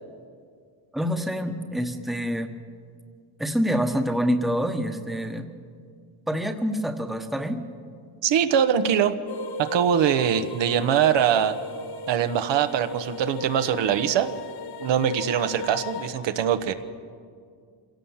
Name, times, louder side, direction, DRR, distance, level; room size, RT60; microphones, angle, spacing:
voice 1, 0.9-2.5 3.4-5.5 6.3-7.6, equal, ahead, 5 dB, 1.2 m, -26 dB
voice 2, 8.2-9.2 9.6-11.6 12.1-14.4 14.8-16.7, right 9 dB, 70° right, 8 dB, 1.3 m, -22 dB
sound 1, 9.3-16.1, left 3 dB, 55° left, 1.4 m, -37 dB
25.5 x 17.5 x 7.3 m, 2.2 s
cardioid pair, 135°, 46 cm